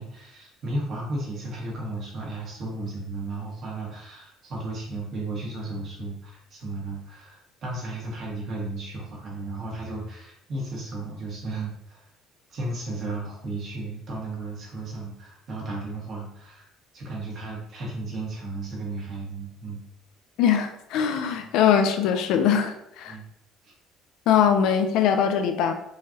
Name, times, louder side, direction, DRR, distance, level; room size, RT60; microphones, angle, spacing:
voice 1, 0.0-12.0 12.5-16.7 16.9-19.8 21.3-21.4 23.1-23.2 23.6-23.7, right 2 dB, 40° right, -3 dB, 1.6 m, -34 dB
voice 2, 20.4-23.2 24.3-25.7, left 8 dB, 70° left, 6 dB, 0.6 m, -22 dB
5.5 x 3.2 x 2.8 m, 0.78 s
cardioid pair, 155°, 0 cm